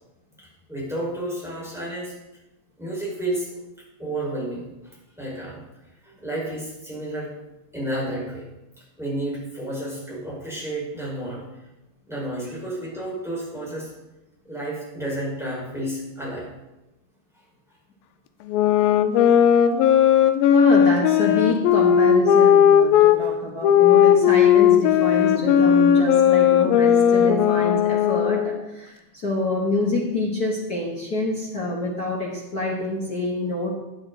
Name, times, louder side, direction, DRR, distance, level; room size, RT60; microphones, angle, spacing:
voice 1, 0.7-2.1 2.8-3.6 4.0-5.6 6.0-7.3 7.7-8.4 9.0-11.4 12.1-13.9 14.5-16.5, right 1 dB, ahead, -6 dB, 4.7 m, -31 dB
sound 1, 18.5-23.2 23.6-28.6, left 9 dB, 85° left, 2.5 m, -17 dB
voice 2, 20.5-33.7, left 2 dB, 55° left, -3 dB, 1.0 m, -27 dB
15.5 x 8.5 x 4.0 m, 0.99 s
omnidirectional pair, 4.1 m